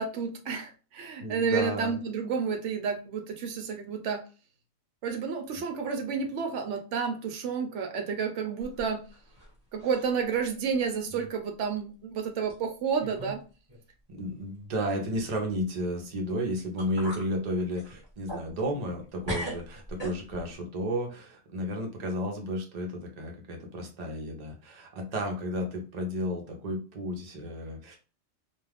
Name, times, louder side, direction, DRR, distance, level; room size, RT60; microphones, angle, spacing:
voice 1, 0.0-4.2 5.0-9.1 9.7-13.4, right 6 dB, 80° right, 4 dB, 0.9 m, -30 dB
voice 2, 1.2-2.0 11.1-11.3 14.1-28.0, equal, 40° right, 2 dB, 0.7 m, -33 dB
sound 1, 8.6-9.5 9.8-10.3 10.7-10.8 11.7-11.8 12.5-12.6 13.0-13.4 13.7-13.8 16.3-16.4 16.8-17.3 17.7-19.0 19.2-20.5, right 1 dB, 20° right, 1.3 m, -39 dB
2.4 x 2.3 x 3.3 m, 0.35 s
omnidirectional pair, 1.2 m